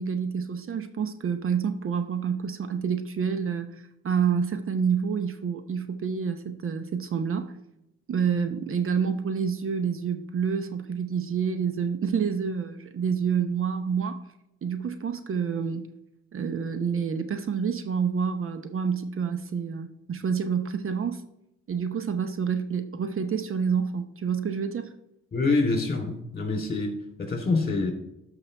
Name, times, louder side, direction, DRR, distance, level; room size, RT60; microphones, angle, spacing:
voice 1, 0.0-7.5 8.1-14.2 14.6-15.9 16.3-21.2 21.7-24.9, right 6 dB, 45° right, 9 dB, 0.8 m, -28 dB
voice 2, 25.3-27.9, left 3 dB, 30° left, 3 dB, 3.1 m, -26 dB
13.0 x 5.8 x 3.3 m, 0.86 s
cardioid pair, 90°, 30 cm